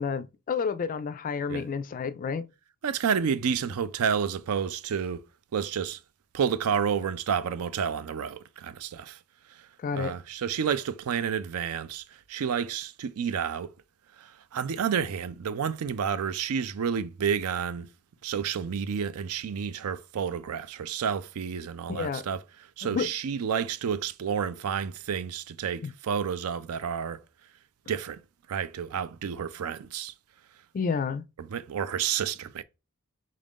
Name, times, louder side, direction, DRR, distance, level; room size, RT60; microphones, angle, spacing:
voice 1, 0.0-2.5 9.8-10.1 21.9-22.3 22.8-23.1 25.8-25.9 30.7-31.2, left 5 dB, 40° left, 0.3 m, -30 dB
voice 2, 2.8-5.2 5.5-6.0 6.3-9.2 9.5-13.7 14.2-17.9 18.2-22.4 22.8-27.2 27.9-28.2 28.5-30.1 31.4-32.6, right 7 dB, 75° right, 0.4 m, -30 dB
3.7 x 2.5 x 3.5 m
head